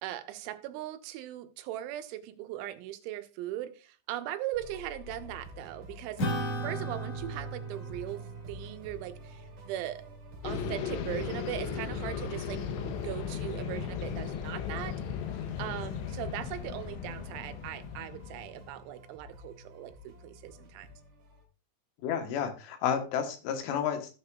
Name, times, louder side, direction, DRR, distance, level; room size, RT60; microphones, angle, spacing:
voice 1, 0.0-6.3 6.6-10.1 10.4-15.0 15.6-20.9, right 13 dB, 90° right, 3.2 m, -39 dB
sound 1, 4.5-21.4, left 1 dB, 45° right, 3.3 m, -49 dB
Acoustic guitar / Strum, 6.2-11.0, right 1 dB, 50° left, 2.1 m, -37 dB
sound 2, 10.4-18.8, left 7 dB, 90° left, 3.3 m, -36 dB
voice 2, 22.0-24.1, left 8 dB, 75° left, 3.3 m, -31 dB
15.5 x 6.6 x 2.3 m
omnidirectional pair, 5.3 m